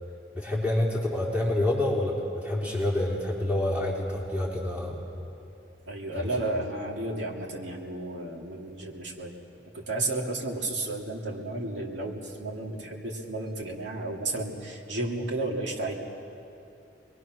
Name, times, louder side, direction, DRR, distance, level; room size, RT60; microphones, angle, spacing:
voice 1, 0.3-5.0 6.2-6.3, left 1 dB, 10° right, -5 dB, 4.0 m, -27 dB
voice 2, 5.9-9.3 9.7-15.9, right 2 dB, 80° right, -1 dB, 2.9 m, -32 dB
25.0 x 22.0 x 6.3 m, 2.7 s
head